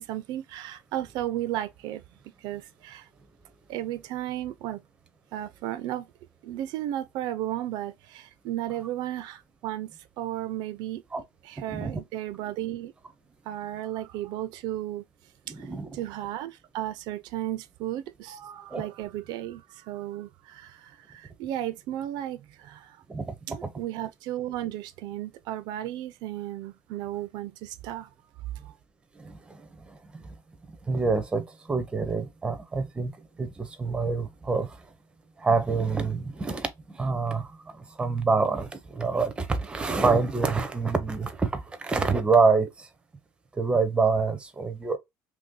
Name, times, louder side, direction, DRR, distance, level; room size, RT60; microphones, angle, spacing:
voice 1, 0.0-2.0 2.4-3.1 3.7-4.8 5.3-6.1 6.4-11.0 11.4-12.9 13.4-15.0 15.9-23.0 23.5-28.1 28.6-28.7, right 13 dB, 85° right, 0.4 m, -34 dB
voice 2, 15.5-16.0 18.7-18.9 23.1-23.3 23.6-23.7 29.2-29.3 30.9-33.1 33.4-34.7 35.4-37.5 37.8-42.9 43.6-45.0, right 4 dB, 15° right, 0.5 m, -26 dB
2.9 x 2.6 x 3.7 m
cardioid pair, 155°, 7 cm